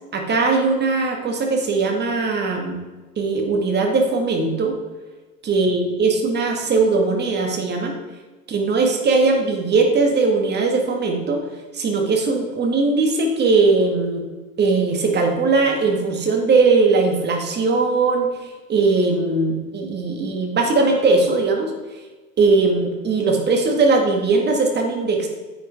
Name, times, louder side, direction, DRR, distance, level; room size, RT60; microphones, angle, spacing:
voice 1, 0.1-2.8 3.2-4.8 5.4-8.0 8.5-11.4 11.7-14.2 14.6-18.4 18.7-21.7 22.4-25.3, right 3 dB, 25° right, 2 dB, 2.0 m, -19 dB
10.0 x 8.3 x 3.7 m, 1.2 s
figure-of-eight pair, 90°, 44 cm